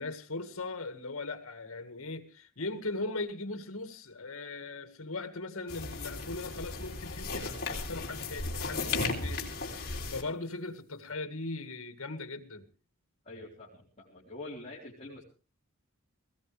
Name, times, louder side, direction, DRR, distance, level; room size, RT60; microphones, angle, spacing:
voice 1, 0.0-12.7, left 2 dB, 80° left, 9 dB, 1.9 m, -39 dB
sound 1, 5.7-10.2, left 3 dB, 45° left, 3.4 m, -35 dB
voice 2, 13.3-15.2, left 2 dB, 30° left, -6 dB, 4.0 m, -45 dB
19.0 x 17.5 x 3.4 m, 0.35 s
head